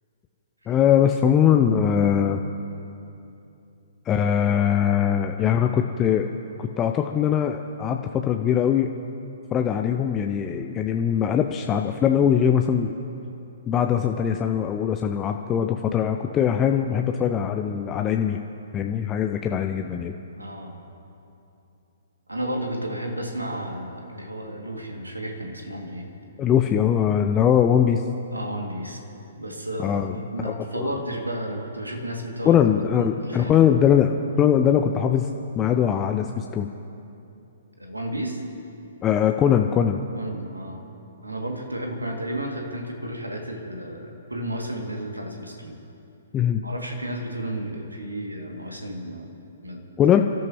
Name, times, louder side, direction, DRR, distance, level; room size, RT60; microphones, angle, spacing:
voice 1, 0.7-2.4 4.1-6.3 6.6-8.9 9.5-13.0 13.7-18.4 18.7-20.1 26.4-28.0 29.8-30.1 30.4-31.0 32.4-36.7 39.0-40.0 46.3-46.7 50.0-50.2, left 9 dB, 20° left, 4 dB, 0.6 m, -21 dB
voice 2, 20.4-20.7 22.3-26.1 28.3-29.0 29.3-32.6 33.0-33.7 37.8-38.4 40.1-40.8 41.2-45.8 46.6-49.3 49.6-49.8, right 1 dB, 85° right, 1 dB, 2.4 m, -32 dB
29.0 x 13.5 x 3.0 m, 2.8 s
figure-of-eight pair, 120°, 0 cm